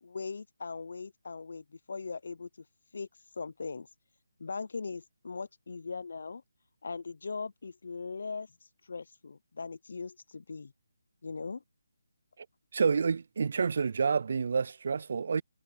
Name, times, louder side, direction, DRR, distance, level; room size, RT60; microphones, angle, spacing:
voice 1, 0.0-2.5 2.9-3.1 3.4-3.9 4.4-6.4 6.8-8.5 8.9-10.7 11.2-11.6, left 4 dB, 65° left, 0.6 m, -39 dB
voice 2, 12.7-15.4, right 5 dB, 55° right, 0.4 m, -28 dB
figure-of-eight pair, 160°, 0 cm